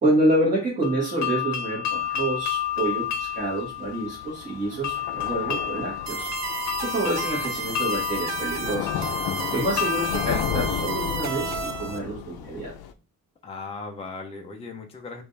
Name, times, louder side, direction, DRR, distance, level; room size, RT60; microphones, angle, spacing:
voice 1, 0.0-6.3 6.8-9.1 9.5-12.7, right 1 dB, 20° right, -6 dB, 1.6 m, -27 dB
sound 1, 0.8-11.6, left 10 dB, 50° left, 0.9 m, -31 dB
Thunder / Rain, 1.9-12.9, left 9 dB, 80° left, 0.7 m, -34 dB
sound 2, 6.1-12.0, right 4 dB, 50° right, 0.6 m, -32 dB
voice 2, 13.4-15.2, left 4 dB, 15° left, 2 dB, 0.6 m, -37 dB
5.2 x 2.6 x 3.2 m, 0.32 s
cardioid pair, 170°, 36 cm